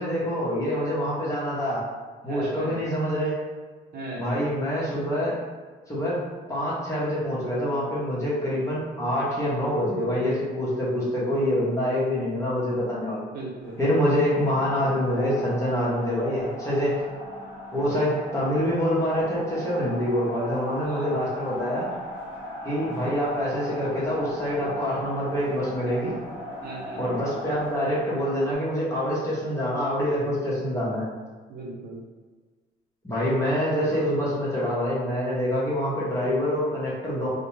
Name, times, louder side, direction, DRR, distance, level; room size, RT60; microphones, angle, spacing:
voice 1, 0.0-1.8 2.2-3.3 4.2-5.4 5.9-6.2 6.5-13.2 13.8-16.9 17.7-21.9 22.6-26.1 27.0-31.1 33.0-37.3, equal, 15° left, -7 dB, 0.9 m, -26 dB
voice 2, 2.2-2.8 3.9-4.4 13.3-13.8 20.8-21.3 26.6-27.1 31.5-32.0, right 2 dB, 60° right, -2 dB, 0.6 m, -37 dB
sound 1, 13.6-28.6, left 1 dB, 75° left, 0.7 m, -38 dB
2.3 x 2.1 x 3.1 m, 1.4 s
cardioid pair, 120°, 18 cm